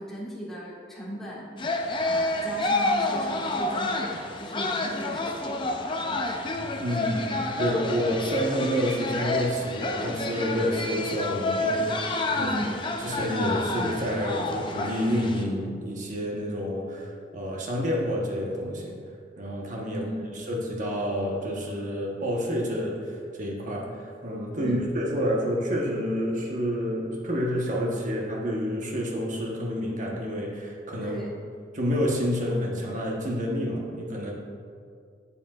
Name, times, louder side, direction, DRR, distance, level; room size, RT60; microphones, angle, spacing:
voice 1, 0.0-1.5 2.0-5.6 5.9-6.2 12.3-12.8 19.9-20.3 24.6-24.8 31.0-31.4, equal, ahead, -7 dB, 1.4 m, -37 dB
sound 1, 1.6-15.4, left 2 dB, 25° left, 0.5 m, -29 dB
voice 2, 6.8-12.5 13.0-19.0 19.4-20.0 20.3-31.2 31.7-34.3, equal, 45° right, -2 dB, 1.1 m, -29 dB
8.1 x 7.5 x 2.4 m, 2.2 s
head